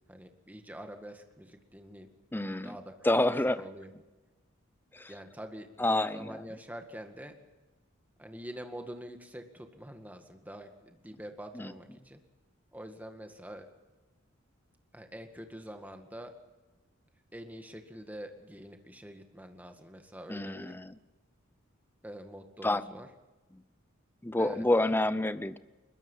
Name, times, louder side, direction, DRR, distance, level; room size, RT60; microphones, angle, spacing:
voice 1, 0.1-2.1 2.6-3.9 5.1-7.3 8.2-12.2 12.7-13.7 14.9-16.3 17.3-20.7 22.0-23.1 24.4-24.7, equal, 10° right, 5 dB, 1.9 m, -45 dB
voice 2, 2.3-2.8 3.0-3.6 4.9-5.1 5.8-6.4 11.5-11.7 20.3-21.0 22.6-22.9 23.5-23.6 24.2-25.6, left 1 dB, 10° left, 14 dB, 0.6 m, -28 dB
22.5 x 21.5 x 5.6 m, 1.2 s
head